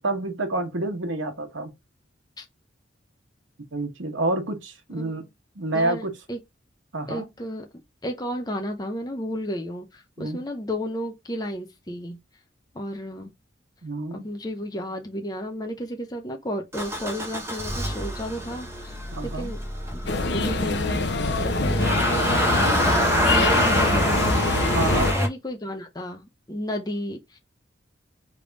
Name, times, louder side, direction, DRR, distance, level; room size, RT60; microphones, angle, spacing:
voice 1, 0.0-1.7 3.7-5.2 5.6-6.1 6.9-7.3 10.2-10.4 13.8-14.3 19.1-19.5 24.7-25.1, right 2 dB, 90° right, 1.2 m, -28 dB
voice 2, 5.7-6.4 7.1-7.7 8.0-12.2 12.7-13.3 14.1-19.6 19.9-27.4, equal, 20° left, 0.7 m, -33 dB
Motor vehicle (road) / Engine starting, 16.7-25.3, equal, 15° right, 0.8 m, -26 dB
sound 1, 20.1-25.1, left 3 dB, 60° left, 0.7 m, -24 dB
3.4 x 3.3 x 3.9 m
head